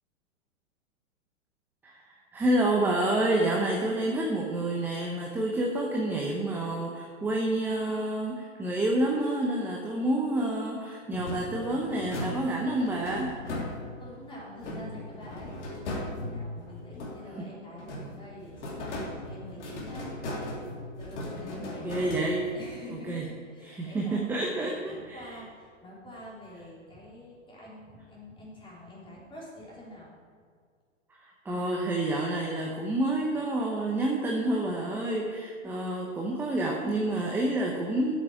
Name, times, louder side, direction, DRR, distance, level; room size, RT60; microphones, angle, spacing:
voice 1, 1.8-13.3 21.5-22.4 23.1-23.2 23.7-25.3 31.1-38.1, right 1 dB, 5° right, -1 dB, 0.7 m, -28 dB
sound 1, 11.1-14.1 14.6-17.4 17.8-22.7, left 1 dB, 65° left, 3.4 m, -38 dB
voice 2, 14.0-15.9 16.3-20.2 21.0-22.1 22.5-24.4 24.7-30.1, left 1 dB, 15° left, -5 dB, 3.5 m, -46 dB
8.8 x 7.6 x 8.6 m, 2.1 s
hypercardioid pair, 140°, 38 cm